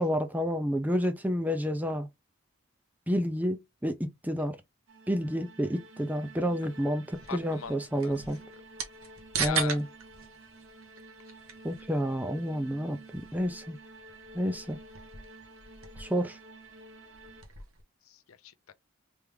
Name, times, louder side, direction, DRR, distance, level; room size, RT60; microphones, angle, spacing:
voice 1, 0.0-2.1 3.1-4.6 5.1-8.4 9.4-9.8 11.6-13.8 14.3-14.8 16.0-16.4, equal, 10° right, 0.6 m, -30 dB
sound 1, 4.9-17.4, right 2 dB, 60° right, 1.1 m, -51 dB
sound 2, 7.1-17.8, right 6 dB, 85° right, 1.2 m, -41 dB
voice 2, 7.3-7.7 8.0-8.1 9.4-9.8 18.1-18.7, left 8 dB, 80° left, 0.5 m, -39 dB
3.5 x 3.4 x 3.2 m
head